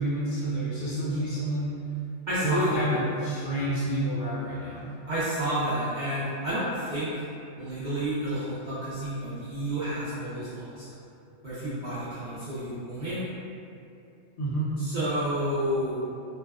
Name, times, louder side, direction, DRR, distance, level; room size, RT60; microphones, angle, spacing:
voice 1, 0.0-1.7 2.4-4.9 14.4-14.7, right 1 dB, 75° left, -9 dB, 1.1 m, -28 dB
voice 2, 2.3-2.8 5.1-7.2 7.6-10.9 11.4-13.2 14.8-16.0, right 1 dB, 60° right, -12 dB, 0.4 m, -30 dB
2.6 x 2.1 x 2.3 m, 2.6 s
omnidirectional pair, 1.3 m